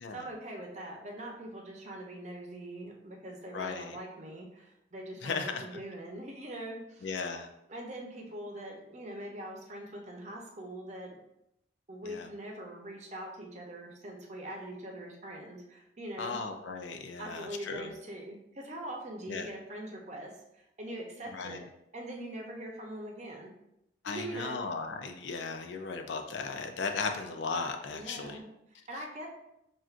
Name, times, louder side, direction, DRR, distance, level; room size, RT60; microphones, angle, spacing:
voice 1, 0.0-7.1 7.7-11.2 11.9-16.4 17.2-21.6 21.9-23.5 24.1-24.6 27.9-29.3, right 1 dB, 35° right, 0 dB, 0.7 m, -42 dB
voice 2, 3.5-4.0 5.2-5.7 7.0-7.5 12.0-12.3 16.2-17.9 19.3-19.5 21.3-21.6 24.0-28.4, left 4 dB, 70° left, 6 dB, 0.4 m, -36 dB
5.7 x 2.5 x 2.4 m, 0.83 s
head